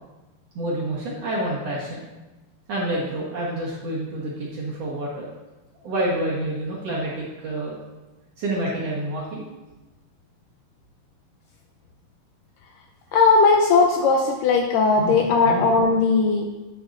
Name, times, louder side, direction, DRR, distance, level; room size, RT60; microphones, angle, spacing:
voice 1, 0.6-2.1 2.7-5.3 5.8-7.8 8.4-9.5 15.0-15.2 15.4-15.7, right 1 dB, 60° right, -5 dB, 1.9 m, -28 dB
voice 2, 13.1-16.5, left 4 dB, 85° left, 2 dB, 2.0 m, -18 dB
9.7 x 8.5 x 2.5 m, 1.1 s
omnidirectional pair, 4.3 m